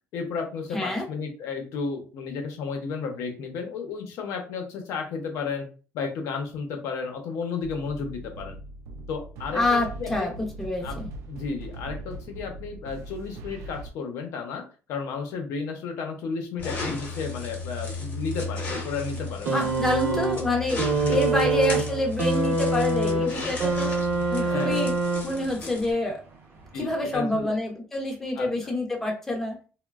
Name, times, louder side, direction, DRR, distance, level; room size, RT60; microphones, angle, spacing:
voice 1, 0.1-5.7 5.9-8.6 9.1-10.3 10.8-11.0 11.3-14.6 14.9-19.7 20.1-20.2 20.9-21.8 23.4-23.9 24.4-24.9 26.7-27.5 28.4-28.7, left 5 dB, 75° left, 4 dB, 0.6 m, -33 dB
voice 2, 0.7-1.1 9.5-11.1 19.5-23.9 24.3-25.0 25.2-26.2 26.7-29.6, left 2 dB, 5° left, 1 dB, 0.5 m, -27 dB
sound 1, 7.6-13.9, right 2 dB, 85° right, 0.4 m, -40 dB
sound 2, 16.6-25.9, left 3 dB, 40° left, 0.8 m, -35 dB
sound 3, 19.4-25.6 26.7-26.8, right 3 dB, 55° right, 0.7 m, -25 dB
3.0 x 2.1 x 2.3 m, 0.36 s
cardioid pair, 145°, 5 cm